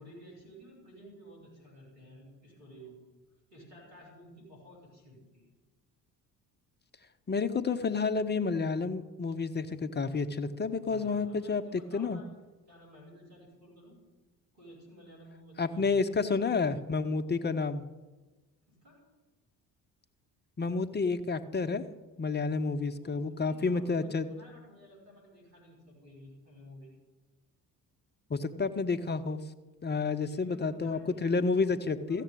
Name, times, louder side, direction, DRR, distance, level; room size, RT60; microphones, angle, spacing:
voice 1, 0.0-3.0 3.5-5.4 10.8-14.0 14.5-16.6 18.7-19.0 22.9-26.9 30.2-31.8 32.1-32.2, equal, 75° right, -3 dB, 5.1 m, -53 dB
voice 2, 7.3-12.2 15.6-17.8 20.6-21.8 22.2-24.3 28.3-29.4 29.8-32.2, left 4 dB, 20° left, 9 dB, 0.9 m, -30 dB
14.5 x 7.4 x 8.8 m, 1.2 s
figure-of-eight pair, 50°, 48 cm